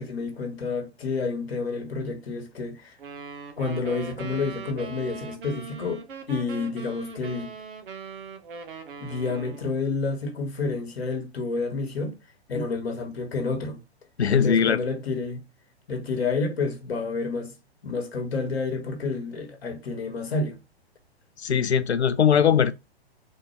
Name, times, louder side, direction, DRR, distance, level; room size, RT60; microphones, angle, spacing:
voice 1, 0.0-3.0 3.6-6.0 6.3-7.5 9.0-12.1 12.5-13.8 14.3-15.4 15.9-17.5 17.8-20.6, left 4 dB, 65° left, 1.3 m, -29 dB
sound 1, 3.0-9.8, right 4 dB, 55° right, 0.8 m, -40 dB
voice 2, 14.2-14.8 21.4-22.7, left 8 dB, 85° left, 0.5 m, -20 dB
3.6 x 2.6 x 4.5 m
figure-of-eight pair, 115°, 32 cm